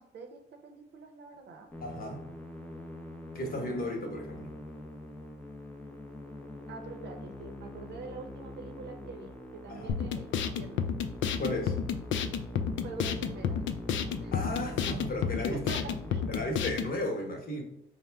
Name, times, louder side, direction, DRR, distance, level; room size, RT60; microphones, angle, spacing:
voice 1, 0.0-1.7 3.5-4.2 6.7-10.9 12.8-13.6 14.2-14.4 15.5-16.3, right 4 dB, 60° right, 4 dB, 0.7 m, -46 dB
Musical instrument, 1.7-16.5, left 1 dB, 10° left, 0.6 m, -44 dB
voice 2, 1.8-2.2 3.3-4.5 9.7-9.9 11.4-11.8 14.3-15.8 16.3-17.6, left 1 dB, 45° left, 1 dB, 1.1 m, -35 dB
sound 1, 9.9-16.9, left 7 dB, 70° left, 0.4 m, -31 dB
4.2 x 2.1 x 3.4 m, 0.81 s
cardioid pair, 90°, 20 cm